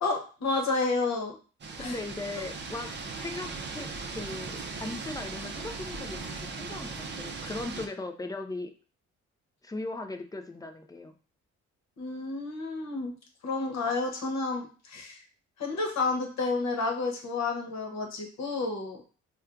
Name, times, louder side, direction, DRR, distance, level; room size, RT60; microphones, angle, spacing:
voice 1, 0.0-1.4 1.8-2.0 12.0-13.1 13.4-15.2 15.6-19.0, left 3 dB, 60° left, 2 dB, 1.0 m, -30 dB
sound 1, 1.6-7.9, right 4 dB, 35° right, 0.5 m, -38 dB
voice 2, 1.8-8.7 9.6-11.1, left 2 dB, 15° left, 7 dB, 0.4 m, -38 dB
4.3 x 2.2 x 2.4 m, 0.37 s
cardioid pair, 90°, 30 cm